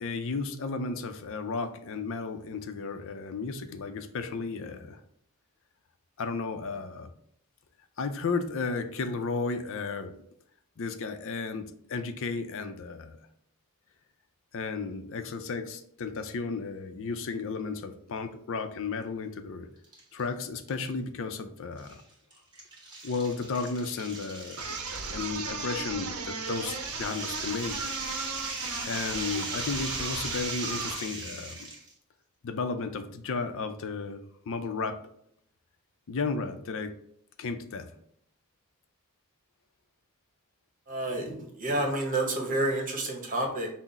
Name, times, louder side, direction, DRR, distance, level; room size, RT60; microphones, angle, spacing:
voice 1, 0.0-5.0 6.2-7.1 8.0-10.1 10.8-13.2 14.5-19.7 20.1-22.0 23.0-24.8 25.1-27.8 28.8-31.7 32.4-34.2 34.5-35.0 36.1-36.9 37.4-37.9, left 4 dB, 60° left, 8 dB, 0.5 m, -33 dB
sound 1, 19.8-20.2 20.7-20.8 21.8-31.9, right 2 dB, 20° right, 1.3 m, -39 dB
sound 2, 24.6-31.0, right 5 dB, 70° right, 0.7 m, -36 dB
voice 2, 40.9-43.7, right 1 dB, 40° right, 1 dB, 1.1 m, -29 dB
5.9 x 2.0 x 4.1 m, 0.69 s
head